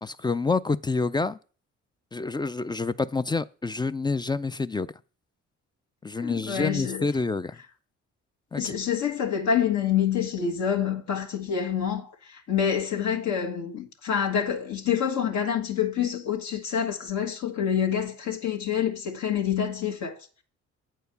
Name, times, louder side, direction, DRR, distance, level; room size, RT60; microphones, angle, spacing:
voice 1, 0.0-1.4 2.1-4.9 6.0-7.6 8.5-8.7, left 3 dB, 15° left, 0.3 m, -28 dB
voice 2, 6.2-7.1 8.5-20.4, left 8 dB, 65° left, 1.5 m, -27 dB
8.6 x 4.6 x 6.8 m
cardioid pair, 90°, 30 cm